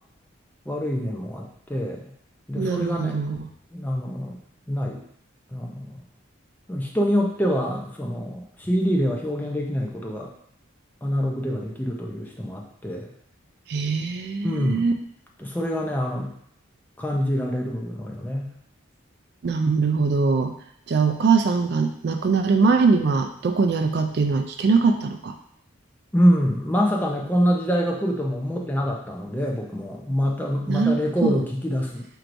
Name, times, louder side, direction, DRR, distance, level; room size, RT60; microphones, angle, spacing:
voice 1, 0.7-2.1 2.5-3.2 3.7-4.4 4.7-5.0 5.5-6.0 6.7-10.3 11.0-13.1 14.4-14.9 15.4-16.3 17.0-18.5 26.1-32.1, equal, 10° left, -1 dB, 0.5 m, -25 dB
voice 2, 2.6-3.5 13.7-14.9 19.4-20.5 20.9-25.3 30.7-31.4, right 4 dB, 50° right, 6 dB, 0.3 m, -22 dB
4.6 x 4.5 x 2.6 m, 0.66 s
head